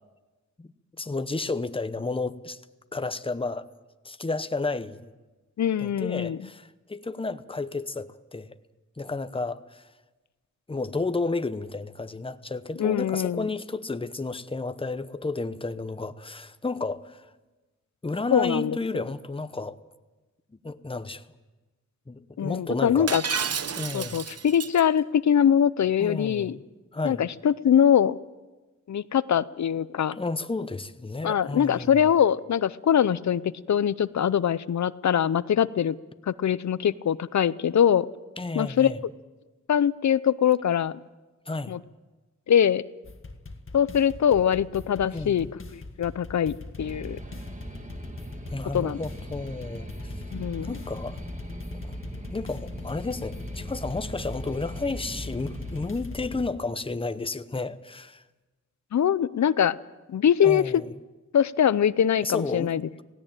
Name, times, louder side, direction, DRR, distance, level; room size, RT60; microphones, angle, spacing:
voice 1, 1.0-2.6 2.9-3.7 4.0-5.1 5.8-8.6 9.0-9.9 10.7-17.3 18.0-19.8 20.6-21.3 22.1-23.1 23.8-24.2 26.0-26.5 26.9-27.2 30.2-32.1 38.4-39.0 41.5-41.7 45.1-45.5 48.5-50.1 50.6-51.2 51.8-52.0 52.3-58.2 60.4-60.9 62.2-62.7, left 3 dB, 20° left, 0.9 m, -32 dB
voice 2, 5.6-6.4 12.8-13.5 18.3-18.8 22.4-23.2 23.9-26.6 27.0-28.2 28.9-30.2 31.2-33.4 33.7-36.0 36.3-38.1 38.5-38.9 39.7-41.0 41.7-41.8 42.5-42.8 43.7-47.2 48.7-49.0 50.3-50.8 58.9-59.8 60.1-60.6 61.3-62.9, left 9 dB, 70° left, 0.6 m, -23 dB
Shatter, 23.1-24.8, right 6 dB, 55° right, 0.8 m, -31 dB
sound 1, 43.0-56.4, left 2 dB, 45° left, 1.8 m, -40 dB
sound 2, 46.8-55.9, right 1 dB, 25° right, 1.8 m, -42 dB
17.5 x 17.0 x 8.9 m
wide cardioid pair, 80°, 29 cm